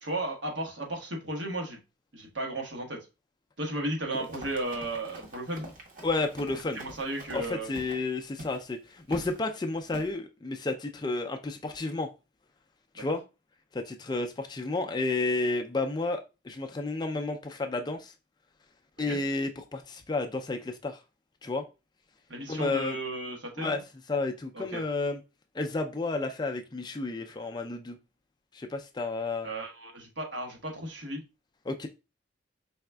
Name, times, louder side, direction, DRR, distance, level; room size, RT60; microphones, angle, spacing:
voice 1, 0.0-1.8 2.1-3.0 3.6-5.7 6.8-7.7 19.0-19.2 22.3-23.8 24.5-24.8 29.4-31.2, right 1 dB, 65° right, 1.1 m, -34 dB
Run, 4.1-8.0 8.4-8.6 9.1-9.4 9.9-10.1, right 1 dB, 45° right, 0.9 m, -45 dB
voice 2, 6.0-6.8 7.3-12.1 12.9-13.2 13.7-18.1 19.0-21.0 21.4-21.7 22.5-23.0 23.6-23.8 24.1-25.2 25.5-28.0 28.5-29.5 31.7-31.9, left 3 dB, 20° left, 0.3 m, -31 dB
4.8 x 3.4 x 2.2 m
head